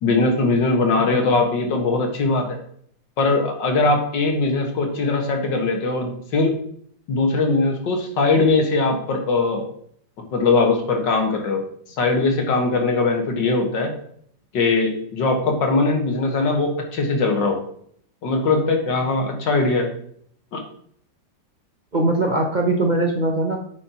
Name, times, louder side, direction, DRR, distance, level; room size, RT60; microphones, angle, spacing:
voice 1, 0.0-2.6 3.2-6.6 7.1-9.6 10.3-11.6 12.0-13.9 14.5-17.6 18.2-19.9 20.5-20.6, left 3 dB, 90° left, 3 dB, 2.3 m, -20 dB
voice 2, 21.9-23.6, right 2 dB, 35° right, 1 dB, 0.8 m, -21 dB
9.7 x 8.0 x 3.0 m, 0.63 s
omnidirectional pair, 1.9 m